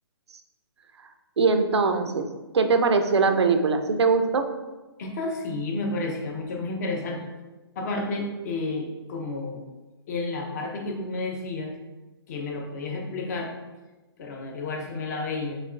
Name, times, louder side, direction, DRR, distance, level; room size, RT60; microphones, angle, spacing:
voice 1, 1.4-2.3 2.5-4.4, right 4 dB, 90° right, 7 dB, 0.6 m, -21 dB
voice 2, 5.0-7.3 7.8-9.6 10.1-11.8 12.3-13.6 14.2-15.6, left 2 dB, 40° left, 2 dB, 0.7 m, -31 dB
5.4 x 3.0 x 2.5 m, 1.1 s
hypercardioid pair, 155°, 14 cm